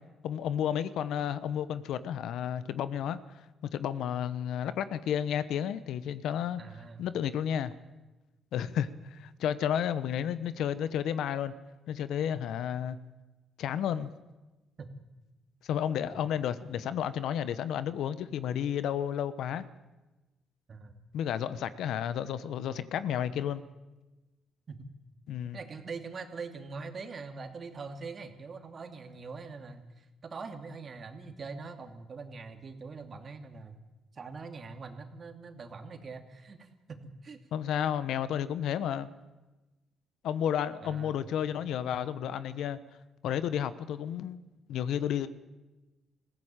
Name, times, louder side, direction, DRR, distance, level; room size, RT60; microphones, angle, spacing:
voice 1, 0.2-3.2 3.6-6.6 7.0-7.7 8.5-11.5 11.9-13.0 13.6-14.1 15.6-19.7 21.1-23.6 25.3-25.6 37.5-39.1 40.2-42.8 43.2-44.4 44.7-45.3, left 9 dB, 80° left, 14 dB, 1.1 m, -32 dB
voice 2, 6.6-7.0 14.8-14.9 16.1-16.2 20.7-21.0 24.7-24.9 25.5-33.8 34.1-37.4 40.8-41.2, right 4 dB, 45° right, 6 dB, 2.5 m, -43 dB
21.0 x 16.0 x 9.0 m, 1.1 s
cardioid pair, 90°, 0 cm